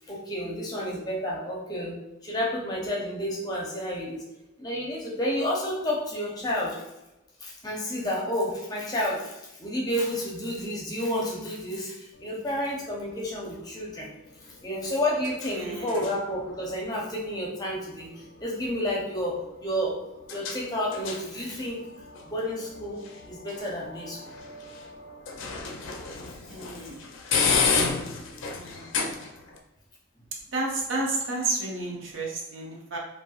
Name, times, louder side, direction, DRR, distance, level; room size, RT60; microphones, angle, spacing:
voice 1, 0.1-4.3 4.6-6.8 7.4-14.1 14.4-20.0 20.3-21.8 22.2-24.4, left 1 dB, 20° left, -3 dB, 0.6 m, -30 dB
sound 1, 12.1-29.6, left 5 dB, 85° left, 0.4 m, -34 dB
voice 2, 15.5-16.0 26.5-27.0 28.5-28.9 30.5-33.0, right 2 dB, 85° right, -1 dB, 0.7 m, -31 dB
3.1 x 2.6 x 2.3 m, 0.94 s
head